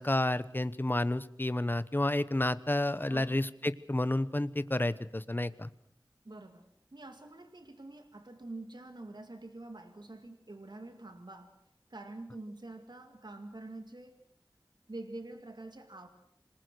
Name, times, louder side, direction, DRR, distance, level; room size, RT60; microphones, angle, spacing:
voice 1, 0.0-5.7, left 1 dB, 25° left, 14 dB, 1.0 m, -30 dB
voice 2, 6.2-11.6 11.9-14.2 14.9-16.1, right 2 dB, 65° right, 6 dB, 2.4 m, -46 dB
26.5 x 20.5 x 6.4 m, 0.70 s
wide cardioid pair, 45°, 8 cm